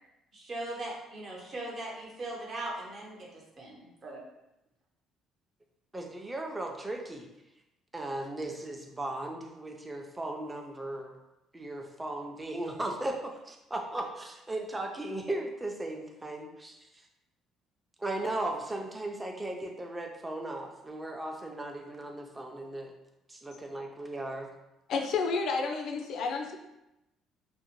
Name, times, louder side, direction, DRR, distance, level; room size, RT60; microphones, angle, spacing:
voice 1, 0.3-4.2, right 2 dB, 45° right, -3 dB, 0.8 m, -39 dB
voice 2, 5.9-7.3 7.9-11.2 11.5-16.8 18.0-22.9 23.3-24.5, right 1 dB, 15° right, 2 dB, 0.4 m, -37 dB
voice 3, 24.9-26.5, left 4 dB, 65° left, 3 dB, 0.3 m, -30 dB
2.5 x 2.0 x 2.9 m, 0.92 s
supercardioid pair, 85°, 0 cm